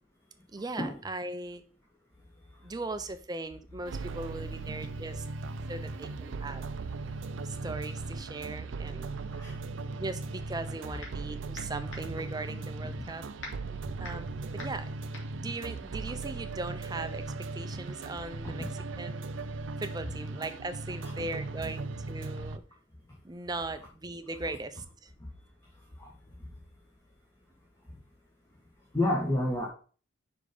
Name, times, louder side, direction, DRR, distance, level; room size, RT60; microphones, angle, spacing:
voice 1, 0.5-1.6 2.6-5.3 5.7-6.7 7.4-9.1 9.8-13.2 13.8-14.9 15.4-18.7 19.0-19.3 19.8-22.6 23.2-25.1, right 2 dB, 20° right, 10 dB, 0.5 m, -39 dB
sound 1, 3.9-22.6, right 3 dB, 70° right, 0.5 m, -38 dB
sound 2, 11.0-11.3 11.5-16.6, left 2 dB, 75° left, 2.3 m, -47 dB
voice 2, 28.9-29.7, left 1 dB, 15° left, -3 dB, 1.4 m, -30 dB
5.3 x 5.1 x 5.0 m, 0.39 s
head